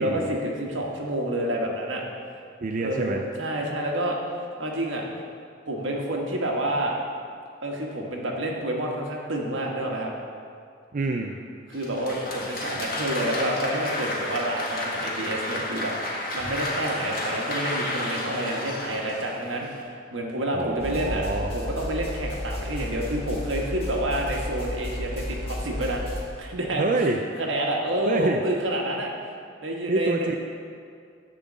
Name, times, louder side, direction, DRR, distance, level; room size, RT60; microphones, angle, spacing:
voice 1, 0.0-2.0 2.8-4.2 4.6-5.0 5.7-7.0 7.6-10.1 11.7-21.2 21.5-26.9 27.4-29.1 29.6-30.3, right 1 dB, 80° right, -1 dB, 1.4 m, -29 dB
voice 2, 2.6-3.2 10.9-11.4 20.5-21.5 26.8-27.2 28.0-28.4 29.9-30.4, right 2 dB, 40° right, 2 dB, 0.4 m, -26 dB
Applause, 11.7-19.8, left 1 dB, 50° left, 1.6 m, -31 dB
sound 1, 20.8-26.2, left 1 dB, 30° left, 1.3 m, -33 dB
10.5 x 3.8 x 7.4 m, 2.3 s
head